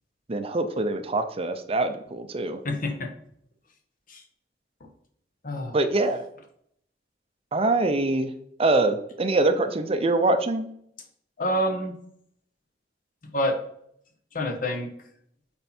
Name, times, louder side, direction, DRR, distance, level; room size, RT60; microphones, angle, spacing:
voice 1, 0.3-2.6 5.7-6.2 7.5-8.3 8.6-10.7, right 2 dB, 35° right, 9 dB, 0.5 m, -24 dB
voice 2, 2.6-3.1 4.1-4.2 5.4-5.8 11.4-11.9 13.3-13.5 14.3-14.9, equal, 50° left, 4 dB, 1.1 m, -27 dB
8.0 x 4.4 x 4.3 m, 0.70 s
head